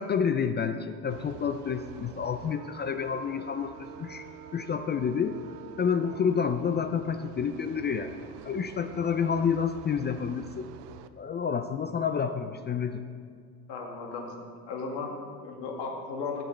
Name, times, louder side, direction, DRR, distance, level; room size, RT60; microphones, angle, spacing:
voice 1, 0.0-4.3 4.5-5.4 5.8-8.2 8.4-10.7 11.2-13.0, left 6 dB, 25° left, 9 dB, 0.3 m, -29 dB
sound 1, 1.1-11.1, right 10 dB, 70° right, 0.6 m, -47 dB
voice 2, 13.7-14.3 14.7-16.5, left 4 dB, 65° left, 1 dB, 1.8 m, -35 dB
12.5 x 7.6 x 3.2 m, 2.1 s
hypercardioid pair, 75°, 45 cm